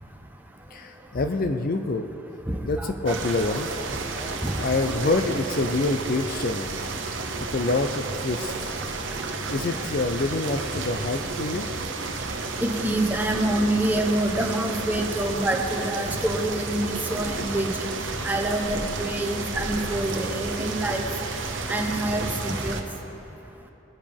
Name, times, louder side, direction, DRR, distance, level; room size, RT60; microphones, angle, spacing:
voice 1, 0.7-2.1 2.6-3.7 4.6-6.8 7.5-8.7 9.5-11.7, left 2 dB, 45° left, 7 dB, 0.5 m, -26 dB
voice 2, 2.5-3.2 4.1-4.7 12.6-17.8 18.2-21.1 21.7-22.8, right 1 dB, 10° right, 2 dB, 1.0 m, -27 dB
sound 1, 3.0-22.8, right 3 dB, 65° right, 1.0 m, -31 dB
20.5 x 10.0 x 3.6 m, 2.9 s
head